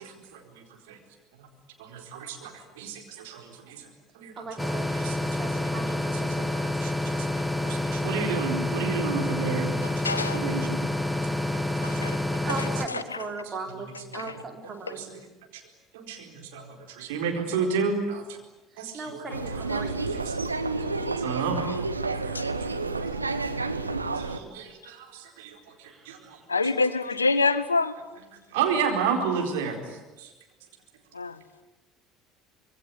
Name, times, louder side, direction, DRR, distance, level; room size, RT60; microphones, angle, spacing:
voice 1, 0.3-1.0 1.4-1.5 1.8-3.9 4.1-5.9 6.2-9.8 10.3-10.8 11.5-12.4 14.6-15.1 15.5-15.6 15.9-18.2 18.8-19.2 19.5-20.4 20.7-21.7 22.2-23.2 24.2-26.4 28.5-30.3, right 5 dB, 65° right, 3 dB, 4.5 m, -32 dB
voice 2, 4.4-4.9 5.4-6.6 12.4-15.0 18.7-20.0 25.8-26.3, right 3 dB, 30° right, 4 dB, 5.0 m, -38 dB
sound 1, 4.6-12.9, left 1 dB, 5° left, 1.1 m, -28 dB
voice 3, 9.8-10.5 11.8-12.2 12.6-13.2 14.1-14.4 14.9-15.0 22.3-22.5 26.5-28.0 31.1-31.4, left 3 dB, 80° left, 15 dB, 1.0 m, -27 dB
sound 2, 19.3-24.4, right 3 dB, 85° right, 1.1 m, -30 dB
26.0 x 22.0 x 9.8 m, 1.1 s
figure-of-eight pair, 60°, 0 cm